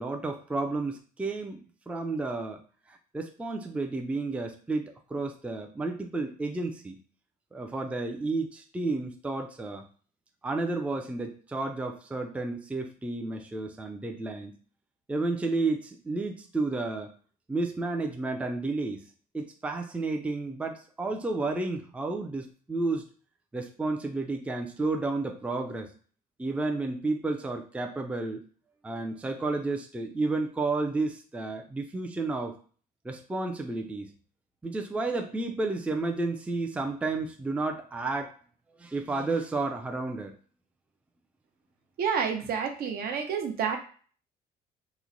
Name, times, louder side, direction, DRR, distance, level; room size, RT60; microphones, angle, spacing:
voice 1, 0.0-2.6 2.9-7.0 7.5-9.8 10.4-14.5 15.1-17.1 17.5-19.0 19.3-23.0 23.5-25.9 26.4-28.4 28.8-32.6 33.0-34.1 34.6-38.3 38.8-40.3, right 3 dB, 5° right, 4 dB, 0.4 m, -31 dB
voice 2, 42.0-43.8, right 6 dB, 65° right, 5 dB, 0.7 m, -29 dB
3.0 x 2.1 x 3.8 m, 0.42 s
cardioid pair, 110°, 17 cm